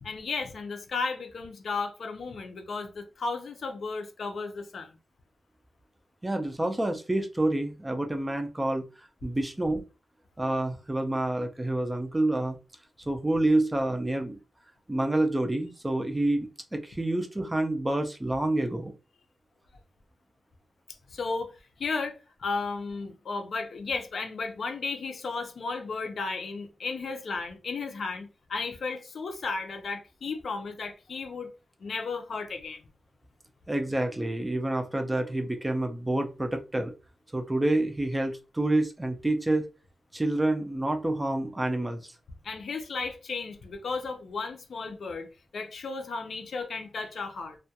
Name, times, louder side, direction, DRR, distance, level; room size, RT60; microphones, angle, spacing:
voice 1, 0.0-5.0 21.1-21.5 21.8-31.5 31.8-32.8 42.4-45.3 45.5-47.6, left 4 dB, 65° left, 0.5 m, -34 dB
voice 2, 6.2-8.8 9.2-9.8 10.4-12.6 13.1-14.4 14.9-18.9 33.7-36.9 37.3-39.7 40.1-42.1, right 1 dB, 15° right, 0.3 m, -28 dB
2.2 x 2.1 x 2.7 m
wide cardioid pair, 170°, 0 cm